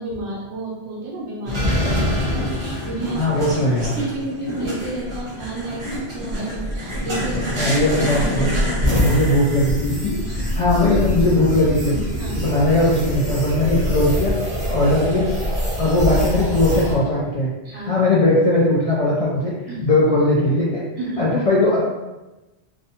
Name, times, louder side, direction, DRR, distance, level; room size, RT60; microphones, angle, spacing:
voice 1, 0.0-3.2 3.6-7.6 8.2-9.0 10.2-10.3 12.2-12.4 17.6-17.9 19.7-19.8 21.0-21.2, right 2 dB, 90° right, -3 dB, 1.0 m, -31 dB
sound 1, 1.5-16.9, equal, 30° right, 0.7 m, -25 dB
voice 2, 3.1-3.9 7.6-8.5 8.9-12.0 12.3-14.3 14.7-15.3 15.8-19.5 19.8-20.8 21.2-21.8, left 2 dB, 65° left, -6 dB, 0.3 m, -19 dB
2.5 x 2.1 x 2.7 m, 1.1 s
omnidirectional pair, 1.1 m